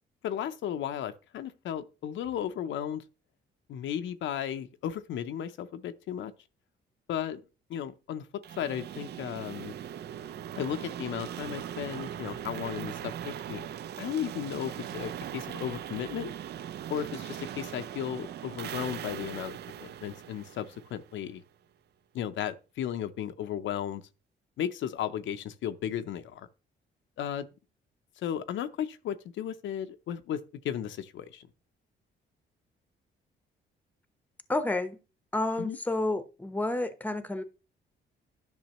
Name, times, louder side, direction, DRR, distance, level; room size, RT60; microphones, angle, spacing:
voice 1, 0.2-3.0 3.7-6.3 7.1-7.4 7.7-9.7 10.6-13.7 14.0-16.3 16.9-21.4 22.1-24.0 24.6-26.5 27.2-27.5 28.2-31.4 35.6-35.8, left 10 dB, 75° left, 0.6 m, -35 dB
sound 1, 8.4-21.3, right 10 dB, 55° right, 0.4 m, -40 dB
voice 2, 34.5-35.0 35.3-37.4, left 2 dB, 10° left, 0.8 m, -30 dB
10.5 x 6.1 x 3.0 m
cardioid pair, 90°, 20 cm